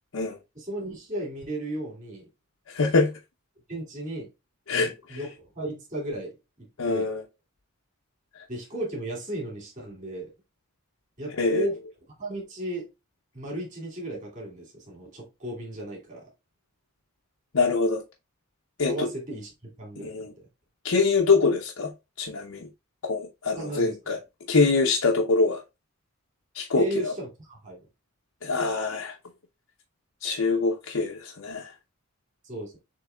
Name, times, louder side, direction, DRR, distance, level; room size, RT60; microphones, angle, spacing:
voice 1, 0.5-2.2 3.7-4.3 4.7-6.3 6.6-7.1 8.5-10.3 11.2-11.8 12.2-12.9 13.3-16.2 18.9-19.5 19.8-20.5 23.6-24.2 26.8-27.9 32.4-32.8, right 1 dB, 35° right, 2.9 m, -35 dB
voice 2, 2.7-3.1 4.7-5.2 6.8-7.2 11.4-11.7 17.5-18.0 18.8-19.1 20.0-20.3 20.8-21.9 22.2-22.7 23.0-24.2 24.5-25.6 26.5-27.1 28.4-29.1 30.2-31.7, left 4 dB, 75° left, 0.7 m, -24 dB
6.7 x 3.3 x 2.3 m
head